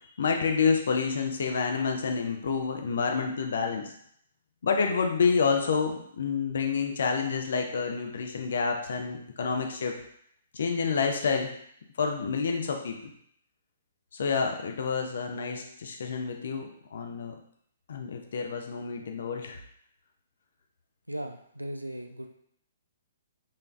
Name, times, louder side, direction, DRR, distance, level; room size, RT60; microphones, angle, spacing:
voice 1, 0.2-3.9 4.6-9.9 10.5-11.5 12.0-13.1 14.1-17.3 17.9-19.6, left 5 dB, 55° left, 3 dB, 0.6 m, -28 dB
voice 2, 21.1-22.3, right 1 dB, 85° right, 5 dB, 0.4 m, -37 dB
5.6 x 3.2 x 2.6 m, 0.69 s
figure-of-eight pair, 120°, 0 cm